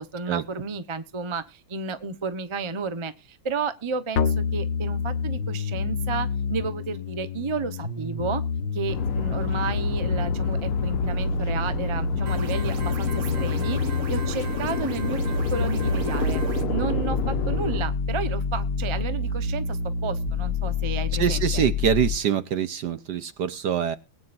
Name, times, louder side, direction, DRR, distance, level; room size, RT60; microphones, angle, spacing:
voice 1, 0.0-8.4 8.7-21.6, right 5 dB, 25° right, 11 dB, 0.6 m, -32 dB
sound 1, 4.2-22.2, left 4 dB, 60° left, 1.8 m, -28 dB
sound 2, 8.9-17.8, left 4 dB, 85° left, 2.4 m, -30 dB
sound 3, 12.3-16.6, right 6 dB, 85° right, 2.6 m, -38 dB
voice 2, 21.2-24.0, right 9 dB, 65° right, 13 dB, 1.2 m, -24 dB
21.5 x 9.5 x 2.6 m, 0.29 s
omnidirectional pair, 2.3 m